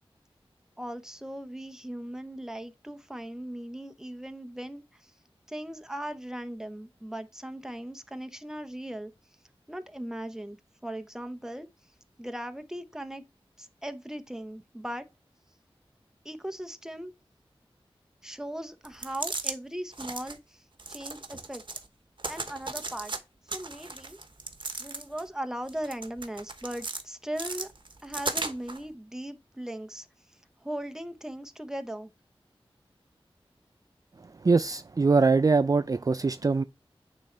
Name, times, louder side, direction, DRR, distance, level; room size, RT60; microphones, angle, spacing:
voice 1, 0.8-5.1 5.5-9.1 9.7-11.7 12.2-13.2 13.6-15.1 16.2-17.1 18.2-20.6 20.9-21.6 22.3-23.1 23.5-24.2 24.8-27.7 28.0-30.1 30.6-32.1, right 1 dB, 5° right, 0.8 m, -38 dB
sound 1, 18.8-19.6 19.9-20.4 20.8-21.9 22.2-23.2 23.5-25.3 25.7-27.0 27.4-28.8, right 3 dB, 55° right, 1.0 m, -36 dB
voice 2, 34.4-36.6, right 4 dB, 35° right, 0.3 m, -23 dB
9.0 x 3.8 x 3.3 m
cardioid pair, 40°, 10 cm